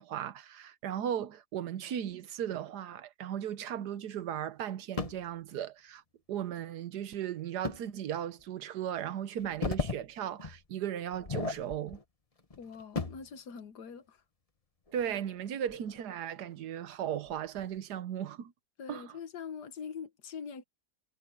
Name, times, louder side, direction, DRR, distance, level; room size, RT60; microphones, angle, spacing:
voice 1, 0.0-6.0 6.3-12.0 14.9-18.5 18.9-19.1, right 10 dB, 85° right, 1.5 m, -36 dB
sound 1, 5.0-5.3 7.6-7.8 8.4-8.5 9.3-10.0 10.4-10.6 11.1-12.0 12.4-13.3 14.9-16.0 16.5-16.6 17.3-17.6, left 3 dB, 25° left, 1.2 m, -36 dB
voice 2, 12.6-14.2 18.8-20.6, left 6 dB, 90° left, 1.8 m, -43 dB
omnidirectional pair, 1.7 m